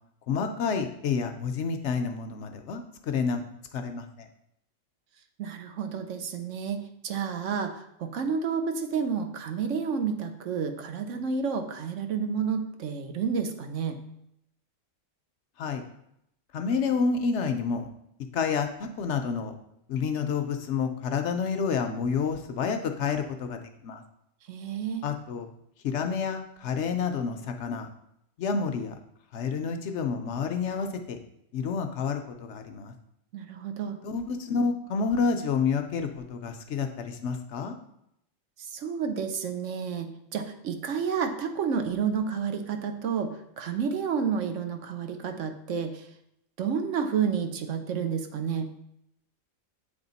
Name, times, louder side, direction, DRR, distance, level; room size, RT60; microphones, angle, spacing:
voice 1, 0.3-3.4 3.7-4.1 15.6-15.8 16.5-17.9 18.3-19.5 19.9-24.0 25.0-25.5 25.8-27.9 28.4-29.0 29.3-31.2 31.5-32.9 34.0-37.8, left 5 dB, 65° left, 6 dB, 0.9 m, -29 dB
voice 2, 5.4-14.0 24.5-25.1 33.3-34.0 38.6-46.1 46.6-48.7, right 6 dB, 70° right, 7 dB, 1.0 m, -30 dB
8.2 x 3.5 x 4.0 m, 0.77 s
omnidirectional pair, 1.3 m